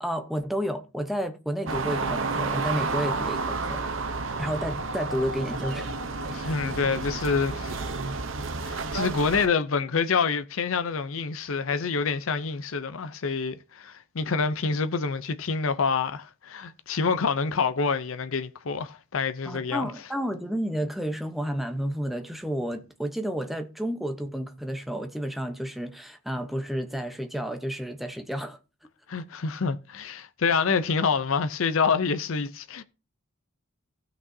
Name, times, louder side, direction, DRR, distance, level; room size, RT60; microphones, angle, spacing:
voice 1, 0.0-3.8 4.4-5.9 6.4-6.8 19.4-28.6, equal, ahead, 0.9 m, -31 dB
sound 1, 1.7-9.5, right 3 dB, 65° right, 0.8 m, -31 dB
voice 2, 6.3-7.8 8.6-19.9 29.1-32.8, left 5 dB, 70° left, 0.6 m, -27 dB
16.0 x 6.0 x 2.7 m
head